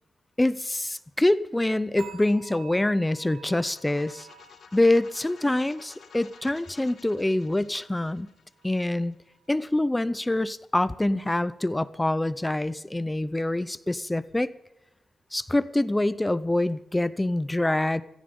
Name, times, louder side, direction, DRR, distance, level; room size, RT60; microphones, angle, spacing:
voice 1, 0.4-4.3 4.7-8.3 8.6-9.1 9.5-14.5 15.3-18.0, left 1 dB, 10° left, 15 dB, 0.6 m, -25 dB
sound 1, 2.0-9.1 9.4-9.7 10.2-10.4, right 7 dB, 85° right, 6.2 m, -51 dB
sound 2, 3.6-9.4, left 6 dB, 65° left, 2.3 m, -53 dB
16.5 x 14.5 x 5.4 m, 0.89 s
wide cardioid pair, 125°, 0 cm